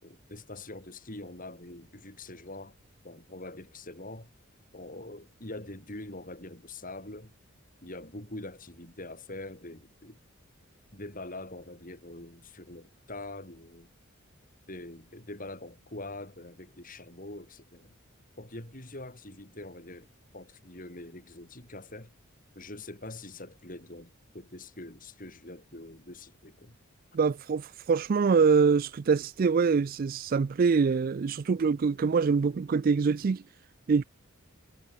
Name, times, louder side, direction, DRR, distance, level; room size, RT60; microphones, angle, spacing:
voice 1, 0.0-2.8 3.0-4.3 4.7-7.3 7.8-10.2 10.9-13.9 14.7-18.0 18.4-22.1 22.5-26.8, left 2 dB, 40° left, 5.4 m, -44 dB
voice 2, 27.1-33.4 33.9-34.0, right 5 dB, 45° right, 0.3 m, -24 dB
head